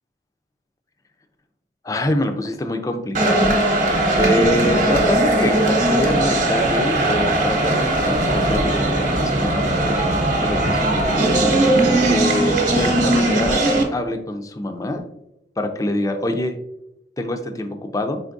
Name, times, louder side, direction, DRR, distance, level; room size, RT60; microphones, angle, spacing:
voice 1, 1.8-3.9 4.1-10.2 10.4-13.6 13.9-15.0 15.6-16.6 17.2-18.2, left 1 dB, 20° left, 6 dB, 0.4 m, -25 dB
sound 1, 3.1-13.8, right 1 dB, 45° right, 0.8 m, -19 dB
4.5 x 3.5 x 2.5 m, 0.81 s
head